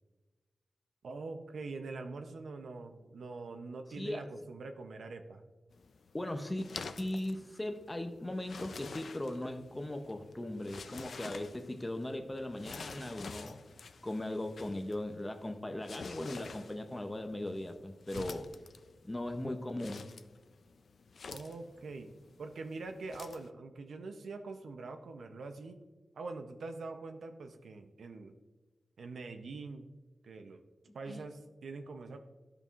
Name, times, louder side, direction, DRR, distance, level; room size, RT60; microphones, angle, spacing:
voice 1, 1.0-5.4 21.3-22.1 22.4-25.8 26.1-28.3 29.0-29.9 30.2-30.6 30.9-32.2, right 3 dB, 90° right, 5 dB, 0.6 m, -44 dB
sound 1, 5.7-23.5, left 4 dB, 65° left, 0.4 m, -49 dB
voice 2, 6.1-6.6 7.0-13.6 14.0-18.5 19.0-20.1 31.1-31.2, left 1 dB, 15° left, 6 dB, 0.6 m, -38 dB
13.0 x 5.3 x 2.4 m, 1.2 s
wide cardioid pair, 135°, 0 cm